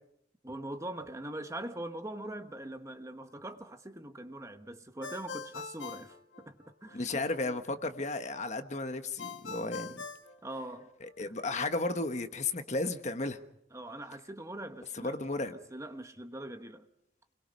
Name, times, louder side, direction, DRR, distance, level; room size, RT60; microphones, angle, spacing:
voice 1, 0.4-7.6 10.4-10.9 11.2-11.4 13.7-15.2 15.5-16.9, right 1 dB, 15° right, 1.1 m, -42 dB
Ringtone, 5.0-7.0 9.2-11.1, left 4 dB, 85° left, 1.8 m, -43 dB
voice 2, 6.9-9.9 11.2-13.4 15.0-15.5, left 2 dB, 40° left, 1.4 m, -34 dB
29.0 x 21.5 x 5.4 m
head